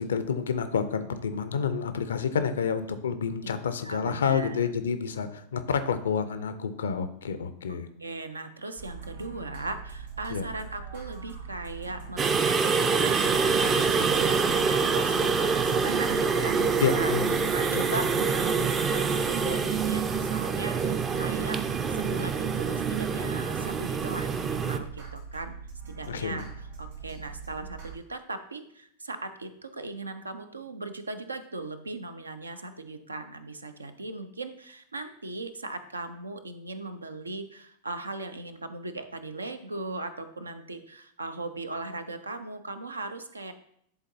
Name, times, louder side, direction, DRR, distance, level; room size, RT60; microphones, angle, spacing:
voice 1, 0.0-7.9 10.3-10.4 16.8-17.4 17.7-17.8 26.1-26.4, left 6 dB, 65° left, 11 dB, 0.5 m, -29 dB
voice 2, 3.8-4.7 7.7-17.1 17.5-25.6 25.9-43.5, right 2 dB, 80° right, 9 dB, 0.5 m, -38 dB
sound 1, 8.8-28.0, right 5 dB, 60° right, 2.2 m, -42 dB
sound 2, 12.2-24.8, right 5 dB, 25° right, 0.4 m, -26 dB
10.5 x 3.8 x 2.7 m, 0.68 s
figure-of-eight pair, 90°, 0 cm